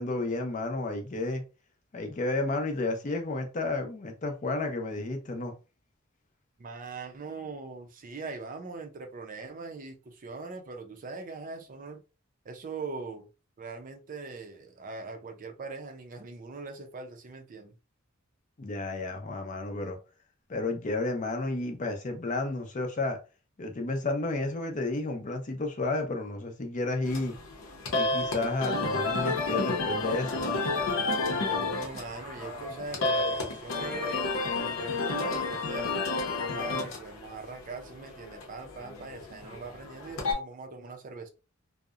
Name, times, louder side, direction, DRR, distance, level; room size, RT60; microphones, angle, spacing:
voice 1, 0.0-1.4 1.9-5.5 18.6-20.0 20.5-23.2 23.6-27.4 27.9-30.6 36.7-36.8, left 2 dB, 40° left, 0.5 m, -32 dB
voice 2, 6.6-12.0 12.4-13.3 13.6-17.7 31.3-34.2 34.6-36.0 36.4-41.3, right 4 dB, 40° right, 0.4 m, -41 dB
sound 1, 27.0-40.3, left 3 dB, 90° left, 0.7 m, -31 dB
2.7 x 2.0 x 2.3 m
head